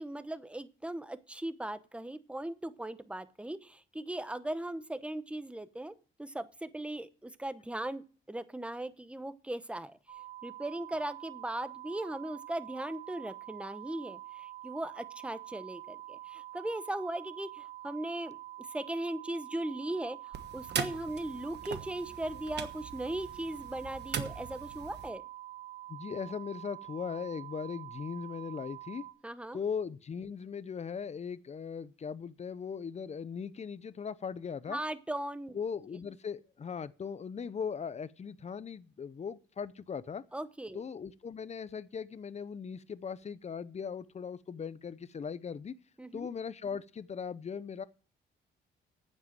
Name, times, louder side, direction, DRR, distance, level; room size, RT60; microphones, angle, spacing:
voice 1, 0.0-5.9 6.2-10.0 10.4-18.4 18.7-25.2 29.2-29.6 34.7-35.6 40.3-40.8 46.0-46.3, right 1 dB, 5° right, 0.9 m, -38 dB
sound 1, 10.1-29.1, right 14 dB, 25° right, 3.6 m, -47 dB
sound 2, 20.3-25.1, right 7 dB, 60° right, 1.3 m, -40 dB
voice 2, 25.9-29.1 29.5-34.8 35.5-40.2 40.7-45.7 46.1-47.8, left 6 dB, 35° left, 0.7 m, -39 dB
9.1 x 7.7 x 7.8 m
cardioid pair, 90°, 20 cm